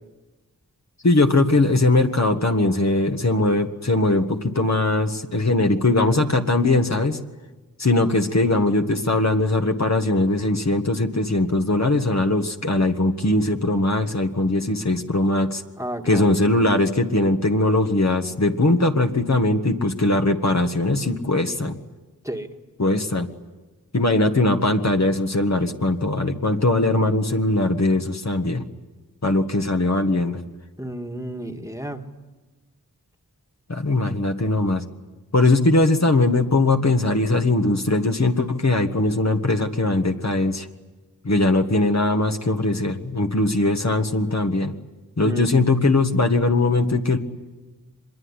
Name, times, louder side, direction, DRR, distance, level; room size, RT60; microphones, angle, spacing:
voice 1, 1.0-7.2 7.8-15.6 16.0-21.8 22.8-23.3 23.9-28.6 29.2-30.4 33.7-34.8 35.3-40.7 41.2-44.7 45.2-47.2, left 2 dB, 45° left, 4 dB, 1.7 m, -20 dB
voice 2, 15.8-16.4 22.2-22.5 30.8-32.0 45.2-45.6, right 1 dB, 10° right, 4 dB, 1.8 m, -31 dB
25.0 x 22.0 x 9.8 m, 1.2 s
wide cardioid pair, 60°, 36 cm